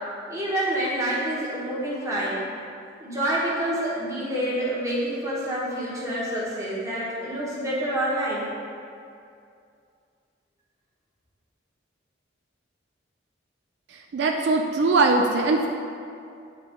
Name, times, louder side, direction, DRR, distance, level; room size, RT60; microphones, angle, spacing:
voice 1, 0.3-2.4 3.0-8.4, right 1 dB, 15° right, -7 dB, 1.2 m, -27 dB
voice 2, 13.9-15.7, right 3 dB, 70° right, 2 dB, 0.4 m, -21 dB
9.4 x 3.1 x 3.7 m, 2.4 s
head